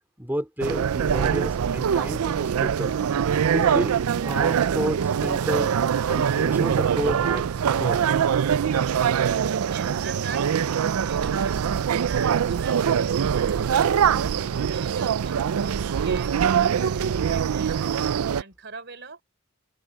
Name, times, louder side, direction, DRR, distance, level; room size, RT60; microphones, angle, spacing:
voice 1, 0.2-3.0 3.5-5.7 6.0-7.5 7.8-8.0, equal, 10° right, 2.7 m, -31 dB
sound 1, 0.6-18.4, right 8 dB, 90° right, 0.4 m, -23 dB
voice 2, 9.7-14.0 14.3-19.2, right 4 dB, 55° right, 3.7 m, -42 dB
open air
head